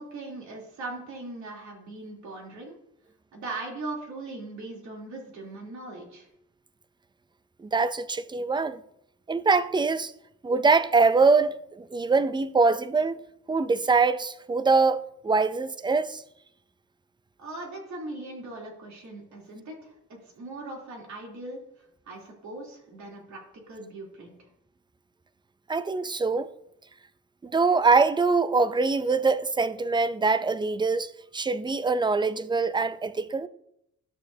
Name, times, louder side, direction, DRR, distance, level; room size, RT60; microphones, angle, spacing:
voice 1, 0.0-2.8 3.3-6.3 17.4-21.6 22.1-24.3, right 2 dB, 70° right, 3.3 m, -39 dB
voice 2, 7.6-8.8 9.3-10.1 10.4-13.2 13.5-16.2 25.7-26.5 27.4-33.5, right 4 dB, 15° right, 0.5 m, -23 dB
12.5 x 7.0 x 2.8 m
cardioid pair, 90°, 30 cm